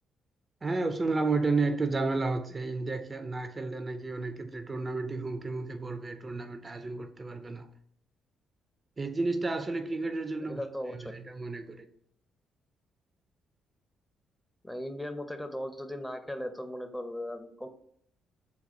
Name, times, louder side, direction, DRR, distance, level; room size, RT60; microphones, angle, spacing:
voice 1, 0.6-7.7 9.0-10.6 10.9-11.9, right 3 dB, 30° right, 0.5 m, -32 dB
voice 2, 10.4-10.9 14.6-17.7, left 1 dB, 10° left, 0.7 m, -37 dB
4.1 x 2.3 x 4.5 m
supercardioid pair, 55°, 0 cm